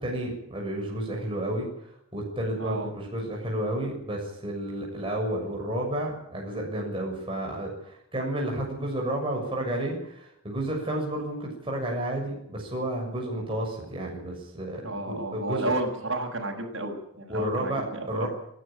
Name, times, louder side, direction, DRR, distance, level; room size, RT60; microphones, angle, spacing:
voice 1, 0.0-1.7 2.1-15.7 17.3-18.3, right 1 dB, 25° right, -1 dB, 6.8 m, -31 dB
voice 2, 2.6-2.9 14.8-18.3, right 2 dB, 60° right, 1 dB, 6.8 m, -32 dB
28.5 x 12.0 x 8.8 m, 0.75 s
head